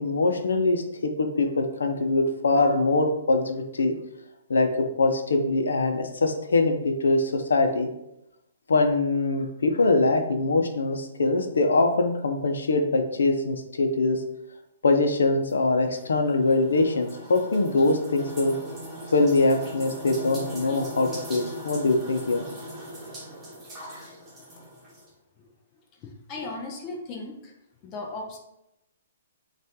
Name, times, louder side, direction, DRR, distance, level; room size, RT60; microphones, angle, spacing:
voice 1, 0.0-4.0 4.5-7.9 8.7-14.2 14.8-18.5 19.1-22.4, left 2 dB, 90° left, 5 dB, 0.7 m, -23 dB
sound 1, 15.5-25.1, equal, 10° right, 1.3 m, -40 dB
voice 2, 26.0-27.5 27.8-28.4, left 2 dB, 25° left, 1 dB, 0.6 m, -36 dB
5.4 x 2.5 x 3.6 m, 0.84 s
hypercardioid pair, 150°, 0 cm